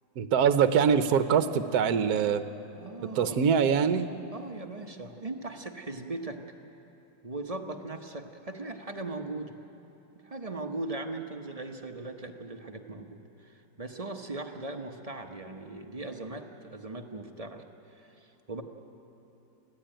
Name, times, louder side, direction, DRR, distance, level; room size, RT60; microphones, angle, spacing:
voice 1, 0.2-2.4 3.2-4.1, right 7 dB, 60° right, 11 dB, 1.3 m, -23 dB
voice 2, 2.7-3.5 4.3-6.4 7.2-9.5 10.2-17.6 17.9-18.6, right 2 dB, 30° right, 4 dB, 0.8 m, -39 dB
24.0 x 16.0 x 9.0 m, 2.9 s
omnidirectional pair, 2.0 m